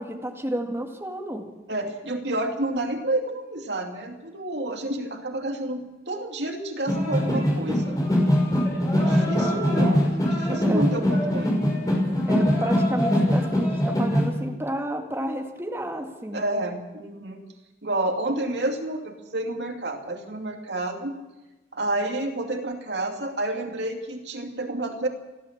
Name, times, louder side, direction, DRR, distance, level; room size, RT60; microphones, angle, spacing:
voice 1, 0.0-1.4 9.1-9.8 10.5-10.8 12.3-16.4, right 1 dB, 15° right, 1 dB, 2.2 m, -31 dB
voice 2, 1.7-8.0 9.0-10.0 10.3-11.7 16.3-17.4 17.8-21.1 21.7-25.1, right 1 dB, 75° right, 3 dB, 2.6 m, -29 dB
sound 1, 6.9-14.3, equal, 20° left, 6.1 m, -22 dB
29.5 x 12.5 x 7.4 m, 1.1 s
head